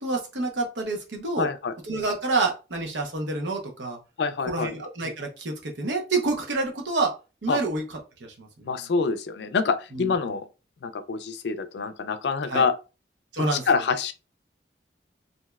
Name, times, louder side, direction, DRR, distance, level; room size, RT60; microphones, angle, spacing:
voice 1, 0.0-1.5 1.9-4.0 4.5-7.1 7.4-7.8 8.2-8.7 9.9-10.1 12.5-12.6 13.3-13.6, right 3 dB, 90° right, 0.9 m, -28 dB
voice 2, 1.4-1.7 4.2-4.7 7.5-7.6 8.6-10.5 10.8-12.7 13.5-14.1, left 5 dB, 75° left, 0.4 m, -26 dB
3.1 x 2.6 x 2.3 m
head